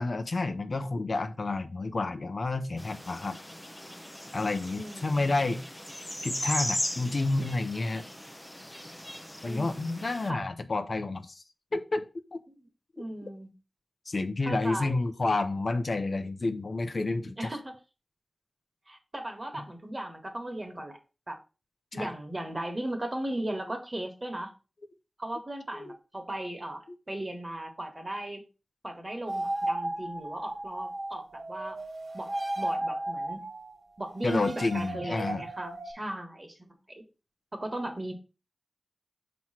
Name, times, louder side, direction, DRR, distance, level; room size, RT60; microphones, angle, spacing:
voice 1, 0.0-3.4 4.3-5.6 6.2-8.0 9.4-11.4 11.7-12.0 12.3-12.4 14.1-17.5 22.0-22.1 25.7-25.9 34.2-35.4, left 3 dB, 65° left, 8 dB, 0.7 m, -30 dB
sound 1, 2.8-10.3, left 1 dB, 10° left, 0.6 m, -38 dB
voice 2, 4.7-5.4 9.4-10.4 12.5-12.6 13.0-13.5 14.4-14.9 17.4-17.7 18.9-21.0 21.3-21.4 21.9-24.5 25.2-28.4 28.8-31.8 32.1-33.4 34.0-37.0 37.5-38.1, right 1 dB, 35° right, 4 dB, 1.5 m, -37 dB
sound 2, 29.3-35.9, right 1 dB, 55° right, 1.4 m, -35 dB
5.9 x 3.1 x 5.7 m, 0.31 s
wide cardioid pair, 80°, 0 cm